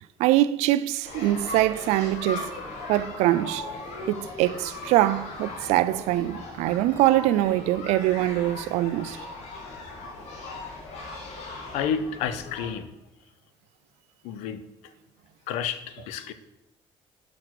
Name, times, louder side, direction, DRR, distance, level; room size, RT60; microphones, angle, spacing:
voice 1, 0.2-2.5 2.9-3.7 4.1-9.2, right 15 dB, 85° right, 0.4 m, -23 dB
sound 1, 1.0-12.7, left 2 dB, 75° left, 1.9 m, -38 dB
voice 2, 11.7-12.9 14.2-14.6 15.5-16.3, left 7 dB, 90° left, 0.6 m, -30 dB
6.0 x 4.9 x 5.8 m
cardioid pair, 100°, 11 cm